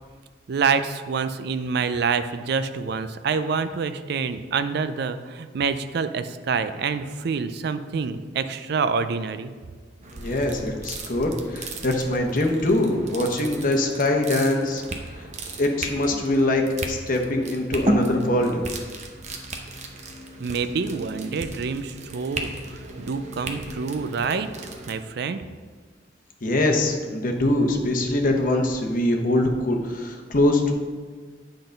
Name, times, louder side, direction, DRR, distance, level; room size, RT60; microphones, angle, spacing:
voice 1, 0.5-9.5 20.4-24.5 24.9-25.4, right 5 dB, 60° right, 11 dB, 0.4 m, -27 dB
sound 1, 10.0-24.9, right 2 dB, 40° right, 0.7 m, -34 dB
voice 2, 10.1-14.8 15.6-18.6 26.4-30.7, left 1 dB, 50° left, 3 dB, 0.9 m, -23 dB
9.0 x 3.9 x 5.1 m, 1.5 s
head